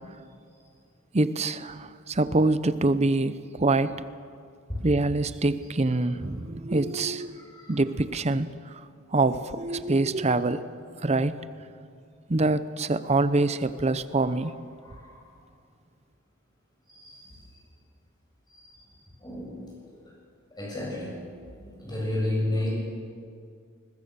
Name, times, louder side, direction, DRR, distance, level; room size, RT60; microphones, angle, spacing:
voice 1, 1.1-4.1 4.8-7.3 7.7-8.8 9.1-10.6 11.0-11.4 12.3-14.5, right 2 dB, 35° right, 0.7 m, -25 dB
voice 2, 7.4-7.8 14.8-15.1 16.9-17.5 18.6-18.7 19.2-20.0 20.5-21.2 21.6-22.7, left 1 dB, 20° left, 7.9 m, -32 dB
22.0 x 20.5 x 6.9 m
head